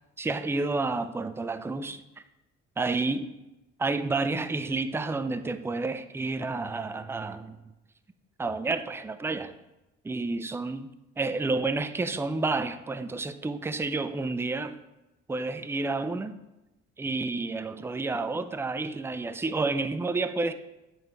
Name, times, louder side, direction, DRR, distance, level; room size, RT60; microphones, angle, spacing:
voice 1, 0.2-2.0 2.8-3.3 3.8-7.6 8.4-9.6 10.0-10.9 11.2-14.8 15.3-16.4 17.0-20.5, right 3 dB, 5° right, 11 dB, 0.4 m, -30 dB
8.7 x 3.2 x 4.6 m, 0.97 s
hypercardioid pair, 50°, 34 cm